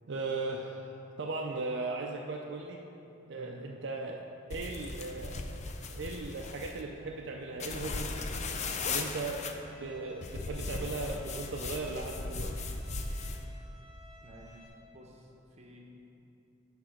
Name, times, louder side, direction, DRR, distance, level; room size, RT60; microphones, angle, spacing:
voice 1, 0.1-2.8 3.2-4.2 4.5-8.3 8.8-12.5, right 3 dB, 65° right, 0 dB, 0.5 m, -38 dB
voice 2, 3.3-3.6 14.2-14.6 14.9-15.8, right 1 dB, 35° right, -1 dB, 1.0 m, -52 dB
sound 1, 4.5-6.8 7.6-9.5 10.2-13.4, left 3 dB, 35° left, 0.5 m, -37 dB
Bowed string instrument, 9.6-14.7, left 2 dB, 20° left, 1.6 m, -56 dB
9.9 x 3.4 x 6.3 m, 2.8 s
head